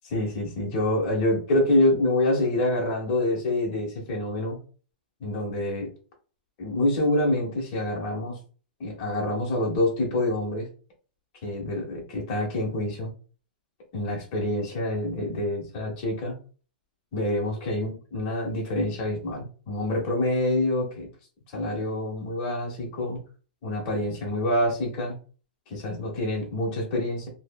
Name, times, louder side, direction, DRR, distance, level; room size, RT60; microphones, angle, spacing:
voice 1, 0.0-4.6 5.2-5.9 6.6-8.4 8.8-10.7 11.4-13.1 13.9-16.4 17.1-21.1 21.5-23.2 23.6-25.2 25.7-27.3, left 1 dB, 30° left, -1 dB, 1.0 m, -26 dB
3.1 x 2.0 x 2.2 m, 0.38 s
supercardioid pair, 175°, 5 cm